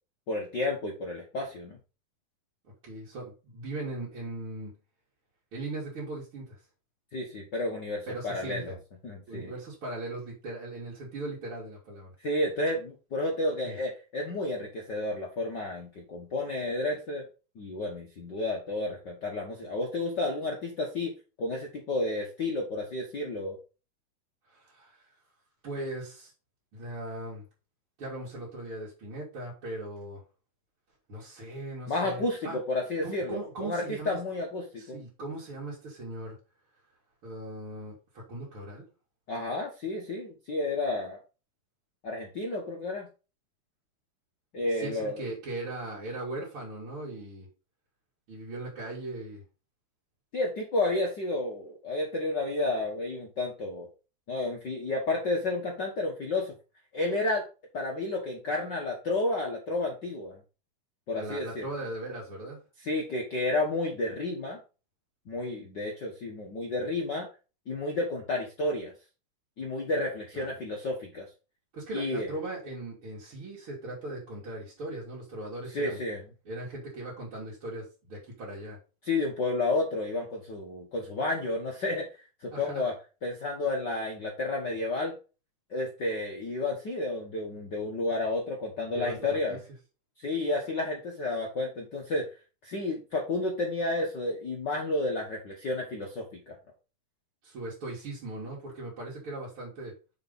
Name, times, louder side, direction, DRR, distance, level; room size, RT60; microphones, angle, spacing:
voice 1, 0.3-1.8 7.1-8.7 9.0-9.5 12.2-17.2 17.5-21.1 21.4-23.6 31.9-35.0 39.3-41.2 42.0-43.1 44.5-45.2 50.3-53.9 54.3-56.5 56.9-57.4 57.7-60.4 61.1-61.7 62.8-64.6 65.3-67.3 67.7-68.9 69.6-71.3 71.9-72.3 75.7-76.2 79.0-82.1 82.4-82.9 83.2-85.1 85.7-89.6 90.2-92.3 92.6-96.5, left 2 dB, 80° left, 1 dB, 0.9 m, -31 dB
voice 2, 2.8-4.7 5.5-6.6 8.0-8.8 9.3-12.1 13.6-13.7 24.5-25.1 25.6-26.3 26.7-27.5 28.0-30.2 31.1-32.6 33.0-34.2 34.8-36.4 37.2-38.8 44.7-47.5 48.3-49.4 61.1-62.6 70.3-70.5 71.7-76.0 76.4-78.8 82.5-82.8 88.9-89.6 97.4-99.9, right 2 dB, 40° right, -6 dB, 3.0 m, -39 dB
6.8 x 4.9 x 5.4 m, 0.32 s
omnidirectional pair, 4.1 m